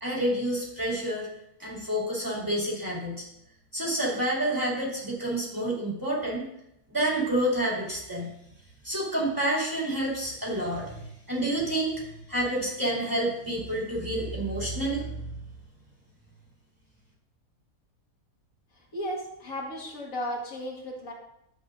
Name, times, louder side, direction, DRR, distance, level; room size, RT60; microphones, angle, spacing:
voice 1, 0.0-1.3 1.6-3.2 3.7-6.5 6.9-8.3 8.8-15.4, right 1 dB, 15° right, -5 dB, 2.5 m, -29 dB
voice 2, 18.9-21.1, equal, 65° left, -1 dB, 2.1 m, -34 dB
11.0 x 7.8 x 2.6 m, 0.79 s
omnidirectional pair, 1.5 m